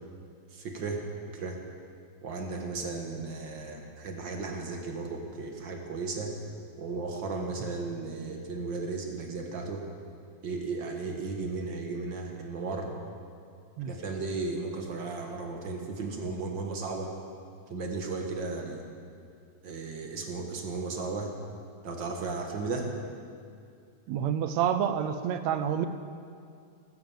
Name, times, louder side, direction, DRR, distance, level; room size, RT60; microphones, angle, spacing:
voice 1, 0.5-1.6 2.2-6.4 6.8-9.8 10.4-12.9 13.8-17.1 17.7-18.8 19.6-21.3 21.8-22.9, right 3 dB, 50° right, 3 dB, 1.6 m, -35 dB
voice 2, 24.1-25.9, right 9 dB, 75° right, 10 dB, 1.7 m, -28 dB
14.0 x 13.0 x 7.3 m, 2.3 s
omnidirectional pair, 3.5 m